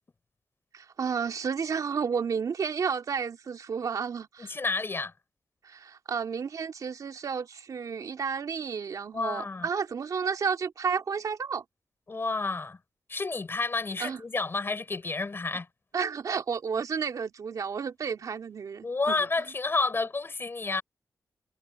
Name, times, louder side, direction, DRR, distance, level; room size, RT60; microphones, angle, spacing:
voice 1, 0.7-4.5 5.6-11.6 14.0-14.2 15.9-19.1, right 6 dB, 70° right, 2.8 m, -31 dB
voice 2, 4.4-5.1 9.1-9.7 12.1-12.8 13.1-15.7 18.8-20.8, left 3 dB, 40° left, 4.1 m, -30 dB
cardioid pair, 75°, 6 cm